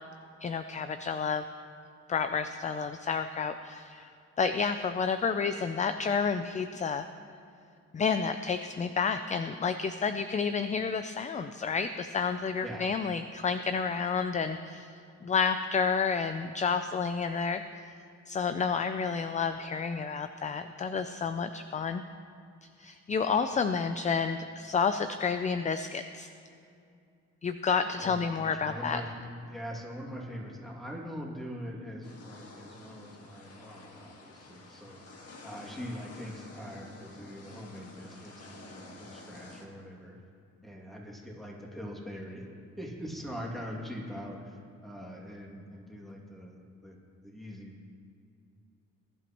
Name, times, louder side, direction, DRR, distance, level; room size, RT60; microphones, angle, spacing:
voice 1, 0.4-1.4 2.1-4.1 4.4-7.1 7.9-14.9 15.2-17.6 18.3-22.0 22.8-26.3 27.4-29.0, left 5 dB, 25° left, 10 dB, 0.4 m, -30 dB
voice 2, 28.0-35.0 35.4-40.2 40.6-47.0 47.2-47.9, equal, ahead, -3 dB, 2.4 m, -42 dB
sound 1, 32.0-39.7, left 2 dB, 55° left, 1.7 m, -50 dB
21.0 x 11.0 x 3.0 m, 2.4 s
cardioid pair, 110°, 29 cm